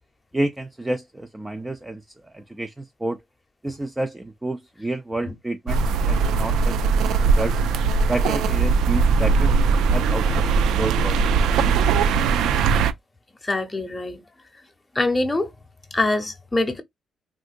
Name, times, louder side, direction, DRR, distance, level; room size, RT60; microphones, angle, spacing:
voice 1, 0.3-3.2 3.6-7.6 8.1-9.6 9.9-11.2, right 1 dB, 15° right, 0.4 m, -30 dB
sound 1, 5.7-12.9, right 5 dB, 85° right, 0.4 m, -20 dB
voice 2, 13.4-14.2 14.9-15.5 15.9-16.8, left 2 dB, 15° left, 0.8 m, -24 dB
3.6 x 2.6 x 2.5 m
cardioid pair, 90°, 0 cm